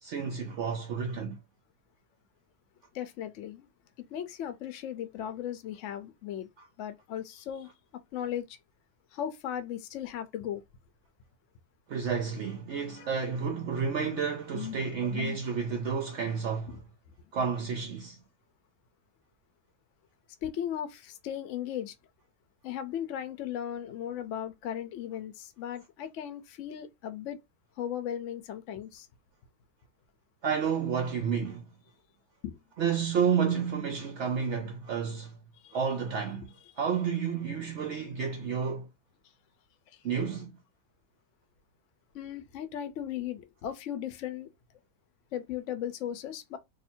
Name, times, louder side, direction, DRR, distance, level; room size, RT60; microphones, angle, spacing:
voice 1, 0.0-1.4 11.9-16.8 17.3-18.2 30.4-31.7 32.8-35.4 35.7-38.9 40.0-40.5, right 6 dB, 65° right, 0.7 m, -30 dB
voice 2, 2.9-3.7 4.0-6.5 6.8-7.7 8.1-8.6 9.1-10.6 13.0-13.1 14.5-15.4 16.7-16.8 20.4-21.9 22.6-27.4 27.8-29.1 32.4-32.6 35.6-35.8 42.1-44.5 45.3-46.6, left 10 dB, 60° left, 0.8 m, -37 dB
2.7 x 2.7 x 4.3 m
omnidirectional pair, 1.8 m